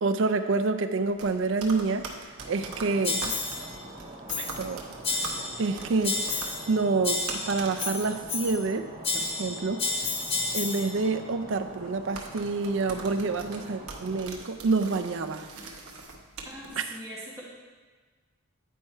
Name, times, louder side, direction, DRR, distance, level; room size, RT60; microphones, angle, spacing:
voice 1, 0.0-2.1 2.5-3.4 4.4-4.8 5.2-5.3 5.6-9.8 10.5-15.5 16.8-17.0, right 3 dB, 60° right, 8 dB, 0.4 m, -28 dB
sound 1, 1.0-16.7, right 3 dB, 80° right, 0.9 m, -44 dB
Stream, 2.4-14.2, right 1 dB, 35° right, 1.3 m, -45 dB
sound 2, 3.0-3.7 4.3-4.7 5.0-5.7 6.0-6.7 7.0-8.7 9.0-10.9, left 3 dB, 25° left, 0.6 m, -31 dB
voice 2, 16.4-17.4, right 1 dB, 15° right, -5 dB, 1.1 m, -41 dB
9.2 x 4.5 x 4.3 m, 1.4 s
head